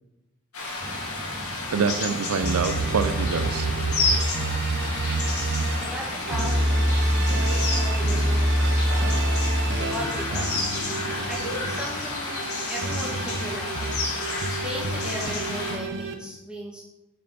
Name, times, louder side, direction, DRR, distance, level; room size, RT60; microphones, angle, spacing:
sound 1, 0.5-15.8, left 3 dB, 90° left, 2.1 m, -31 dB
sound 2, 0.8-12.3, right 1 dB, 20° right, 0.7 m, -42 dB
voice 1, 1.7-3.7, right 5 dB, 90° right, 11 dB, 0.4 m, -26 dB
sound 3, 2.4-5.9 6.3-11.8 12.3-16.1, right 1 dB, 55° right, 0.8 m, -26 dB
voice 2, 5.8-9.2 9.9-10.7 11.3-14.2 14.5-16.8, equal, 5° right, -5 dB, 2.0 m, -37 dB
6.8 x 6.5 x 4.2 m, 0.93 s
head